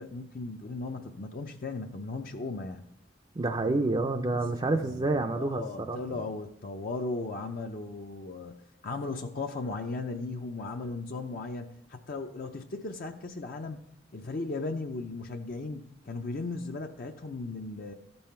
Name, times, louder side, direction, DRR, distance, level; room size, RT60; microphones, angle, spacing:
voice 1, 0.0-2.8 4.6-13.8 14.1-17.9, left 3 dB, 50° left, 3 dB, 0.6 m, -37 dB
voice 2, 3.4-6.0, right 2 dB, 25° right, 3 dB, 0.4 m, -28 dB
14.0 x 5.5 x 4.3 m, 0.77 s
head